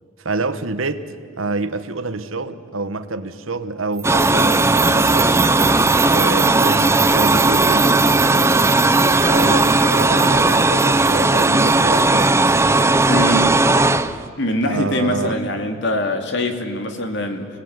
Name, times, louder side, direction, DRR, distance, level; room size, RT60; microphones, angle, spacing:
voice 1, 0.2-5.3 6.1-8.6 9.2-12.4 14.6-15.4, right 3 dB, 80° right, 11 dB, 1.4 m, -27 dB
sound 1, 4.0-14.3, right 2 dB, 15° right, 0.6 m, -16 dB
sound 2, 4.0-13.0, right 14 dB, 40° right, 1.1 m, -29 dB
voice 2, 5.4-6.2 9.1-9.4 13.1-13.5 14.4-17.5, left 1 dB, 60° left, 5 dB, 2.8 m, -24 dB
29.5 x 19.5 x 9.7 m, 2.3 s
head